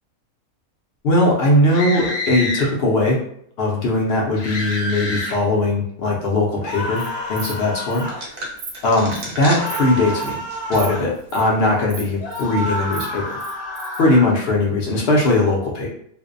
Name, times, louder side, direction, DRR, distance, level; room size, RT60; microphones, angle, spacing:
voice 1, 1.0-3.2 3.6-7.0 7.3-8.3 8.8-10.4 10.7-13.4 14.0-15.9, left 2 dB, 65° left, -2 dB, 0.6 m, -19 dB
sound 1, 1.7-2.7 4.4-5.4 6.6-8.2 9.4-11.1 12.2-14.3, left 1 dB, 80° left, 1.1 m, -28 dB
Insect, 6.7-7.1 7.3-7.6 7.9-8.0 8.4-8.7 9.1-9.3 9.6-9.8 10.2-10.4 10.7-10.9 11.1-11.4 11.9-12.4 12.7-14.0, right 5 dB, 85° right, 1.1 m, -36 dB
sound 2, 8.1-11.1 11.5-11.6 12.4-12.8, equal, 50° right, 0.7 m, -34 dB
2.5 x 2.1 x 2.4 m, 0.68 s
omnidirectional pair, 1.5 m